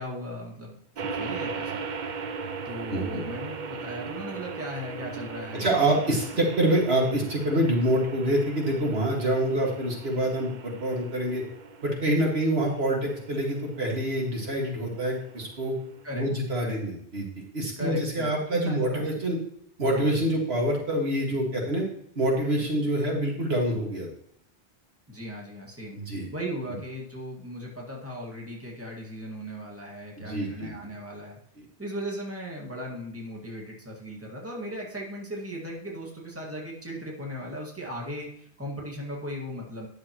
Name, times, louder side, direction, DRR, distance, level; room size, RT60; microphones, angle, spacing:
voice 1, 0.0-1.8 2.7-5.8 16.0-16.2 16.6-16.8 17.8-19.0 25.1-26.0 26.3-31.4 31.8-39.9, equal, 15° right, -3 dB, 1.9 m, -37 dB
sound 1, 1.0-16.3, right 5 dB, 55° right, 0.7 m, -39 dB
voice 2, 2.9-3.2 5.5-11.4 11.8-15.7 16.1-19.4 19.8-21.8 22.2-24.1 25.9-26.3 30.2-30.7, right 1 dB, 75° right, -2 dB, 2.2 m, -26 dB
10.0 x 6.8 x 3.0 m, 0.70 s
omnidirectional pair, 1.1 m